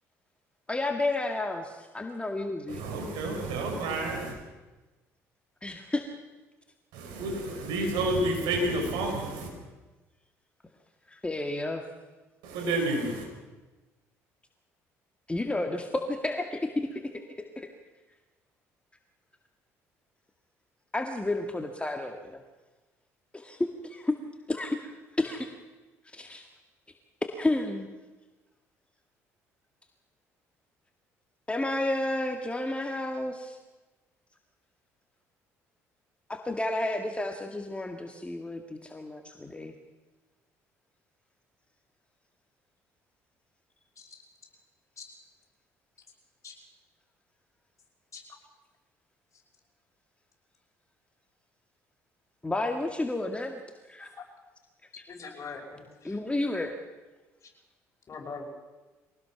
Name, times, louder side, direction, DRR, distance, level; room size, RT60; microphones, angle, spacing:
voice 1, 0.7-2.8 5.6-6.0 11.1-11.8 15.3-17.7 20.9-22.4 23.3-24.2 24.5-25.5 26.1-26.5 27.2-27.9 31.5-33.6 36.3-39.7 52.4-53.6 53.9-54.1 56.0-56.7, left 2 dB, 15° left, 4 dB, 2.0 m, -31 dB
voice 2, 2.7-4.3 6.9-9.5 12.4-13.2, right 2 dB, 70° right, 2 dB, 5.3 m, -30 dB
voice 3, 55.1-56.2 58.1-58.4, left 5 dB, 40° left, 0 dB, 5.9 m, -42 dB
23.5 x 18.5 x 6.0 m, 1.2 s
hypercardioid pair, 55°, 8 cm